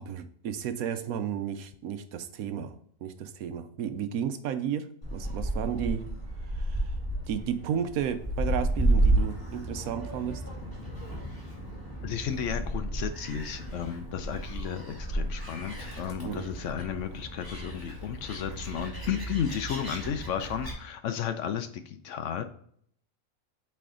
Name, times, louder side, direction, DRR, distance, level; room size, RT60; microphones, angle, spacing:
voice 1, 0.0-6.1 6.5-6.9 7.3-10.4 16.2-16.5, right 8 dB, 80° right, 10 dB, 1.1 m, -33 dB
Gull seagull, 5.0-20.7, right 1 dB, 15° left, 2.4 m, -32 dB
voice 2, 12.0-22.4, left 8 dB, 65° left, 9 dB, 0.9 m, -33 dB
8.4 x 3.4 x 3.7 m, 0.64 s
omnidirectional pair, 1.5 m